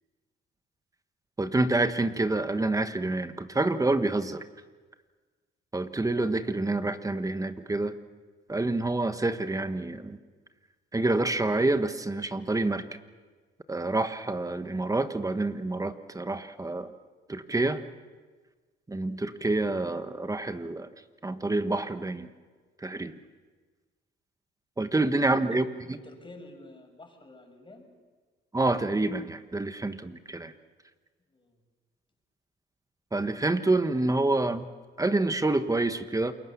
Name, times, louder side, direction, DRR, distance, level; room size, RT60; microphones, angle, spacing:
voice 1, 1.4-4.4 5.7-7.9 8.5-10.2 10.9-12.9 13.7-16.9 17.3-17.8 18.9-20.9 21.2-22.3 22.8-23.1 24.8-26.0 28.5-30.5 33.1-34.7 35.0-36.3, right 2 dB, 15° right, 10 dB, 1.3 m, -27 dB
voice 2, 25.2-27.9 31.3-31.6, left 2 dB, 25° left, 4 dB, 6.2 m, -50 dB
28.5 x 22.0 x 7.1 m, 1.4 s
cardioid pair, 90°, 20 cm